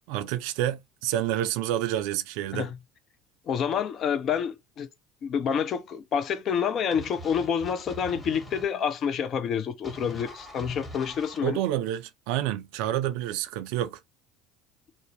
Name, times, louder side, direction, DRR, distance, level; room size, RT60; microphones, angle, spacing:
voice 1, 0.1-2.7 11.4-14.0, right 12 dB, 65° right, 0.3 m, -28 dB
voice 2, 3.5-4.9 5.2-11.6, left 7 dB, 50° left, 0.5 m, -28 dB
sound 1, 6.9-8.7 9.8-11.4, equal, 20° left, 1.3 m, -43 dB
2.6 x 2.0 x 2.8 m
hypercardioid pair, 70°, 0 cm